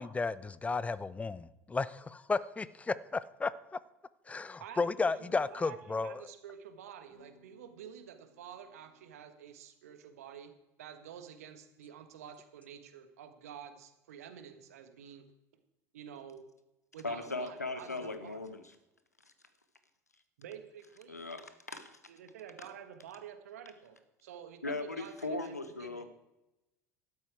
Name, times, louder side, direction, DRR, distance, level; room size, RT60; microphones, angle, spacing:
voice 1, 0.0-3.5 4.3-6.2, left 4 dB, 15° left, 18 dB, 0.6 m, -33 dB
voice 2, 4.6-10.5 10.8-15.3 15.9-16.4 16.9-18.4 20.4-21.2 22.1-26.0, right 8 dB, 70° right, 8 dB, 1.4 m, -49 dB
sound 1, 5.4-5.7 7.1-9.1, left 4 dB, 45° left, 2.5 m, -66 dB
voice 3, 17.0-18.6 21.1-22.0 24.6-26.1, left 2 dB, 85° left, 10 dB, 1.0 m, -38 dB
12.5 x 12.0 x 4.7 m, 0.95 s
figure-of-eight pair, 70°, 8 cm